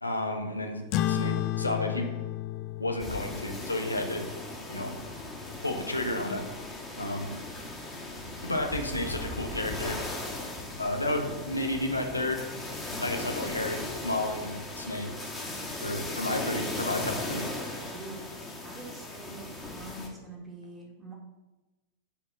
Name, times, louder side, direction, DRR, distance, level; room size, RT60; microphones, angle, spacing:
voice 1, 0.0-2.1 2.8-4.3 4.7-5.0 5.6-6.4 7.0-7.3 8.4-10.2 10.8-12.5 13.0-15.1 15.8-17.4, left 1 dB, 85° left, 3 dB, 1.0 m, -32 dB
sound 1, 0.9-5.8, left 13 dB, 40° left, 0.4 m, -33 dB
sound 2, 3.0-20.1, left 2 dB, 10° left, 2.0 m, -38 dB
voice 2, 17.9-18.3 18.6-21.1, right 2 dB, 15° right, -1 dB, 2.2 m, -44 dB
7.0 x 5.1 x 6.2 m, 1.1 s
figure-of-eight pair, 90°, 0 cm